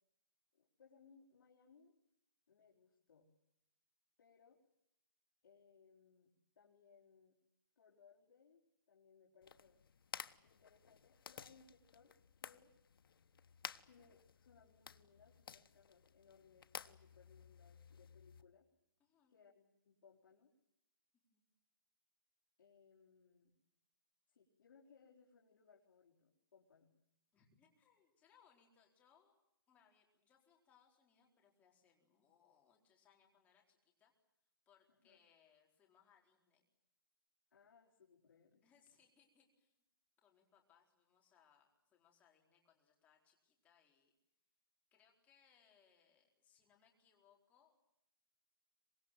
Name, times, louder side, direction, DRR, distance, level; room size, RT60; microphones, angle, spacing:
voice 1, 0.5-1.9 2.5-3.3 4.2-4.6 5.4-7.4 7.8-9.8 10.4-12.7 13.9-18.7 19.3-20.5 22.6-23.5 24.3-26.9 34.9-35.2 37.5-38.6, left 6 dB, 65° left, -3 dB, 4.3 m, -68 dB
sound 1, 9.4-18.4, left 7 dB, 80° left, 1.2 m, -54 dB
voice 2, 19.0-19.4 21.3-21.4 27.3-29.3 29.7-34.1 34.7-36.6 38.6-39.8 40.2-44.1 44.9-47.7, left 7 dB, 15° left, 0 dB, 4.3 m, -73 dB
25.0 x 21.5 x 9.1 m, 0.82 s
hypercardioid pair, 165°, 12 cm